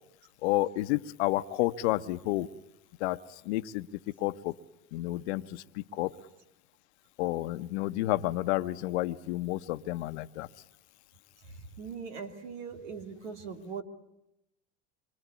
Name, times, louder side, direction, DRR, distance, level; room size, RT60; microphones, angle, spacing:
voice 1, 0.4-2.5 3.0-3.2 3.4-3.9 4.2-4.5 4.9-6.1 7.2-10.5, left 17 dB, 75° left, 12 dB, 1.1 m, -30 dB
voice 2, 11.8-13.8, right 6 dB, 85° right, 7 dB, 2.9 m, -40 dB
26.5 x 24.5 x 8.4 m, 0.85 s
hypercardioid pair, 85°, 34 cm